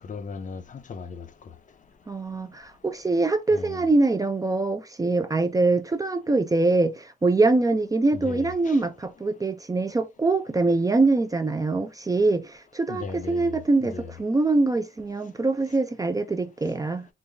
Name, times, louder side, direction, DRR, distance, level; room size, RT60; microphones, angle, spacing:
voice 1, 0.1-1.3 3.5-3.9 8.1-8.8 12.9-14.1, left 5 dB, 40° left, 0.6 m, -37 dB
voice 2, 2.1-17.1, right 3 dB, 15° right, 0.4 m, -24 dB
3.9 x 2.2 x 3.2 m
cardioid pair, 90°, 20 cm